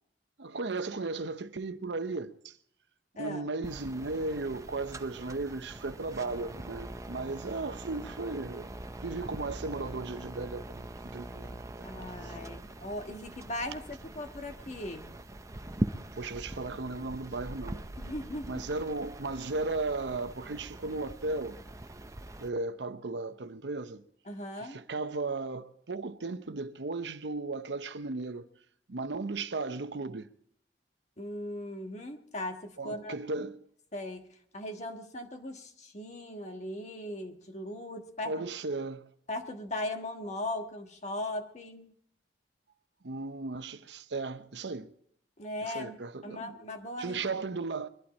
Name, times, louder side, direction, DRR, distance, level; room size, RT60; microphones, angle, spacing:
voice 1, 0.4-2.6 3.2-8.7 9.0-10.9 11.1-11.6 12.2-12.4 16.1-17.8 18.5-21.6 22.4-24.0 24.6-28.4 28.9-30.3 32.8-33.6 38.2-39.1 43.0-44.9 45.6-46.6 47.0-47.9, right 3 dB, 80° right, 0.8 m, -36 dB
voice 2, 3.2-3.5 11.8-15.1 18.0-18.6 24.2-24.8 31.2-33.2 33.9-34.3 34.5-38.3 39.3-41.9 45.4-46.0 46.2-47.3, left 1 dB, 40° left, 1.5 m, -38 dB
sound 1, 3.6-22.5, right 1 dB, 20° right, 0.6 m, -42 dB
22.5 x 11.5 x 4.2 m
head